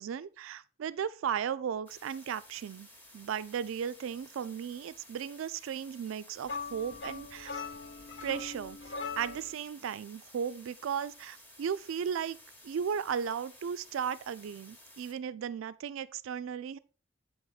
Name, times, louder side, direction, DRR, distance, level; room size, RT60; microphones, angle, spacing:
voice 1, 0.0-2.9 3.1-7.6 8.2-8.8 9.2-12.4 12.6-16.8, right 8 dB, 85° right, 0.3 m, -36 dB
sound 1, 1.9-15.1, left 1 dB, 10° left, 0.8 m, -55 dB
sound 2, 6.4-9.6, left 4 dB, 60° left, 0.6 m, -41 dB
7.7 x 3.5 x 3.9 m
head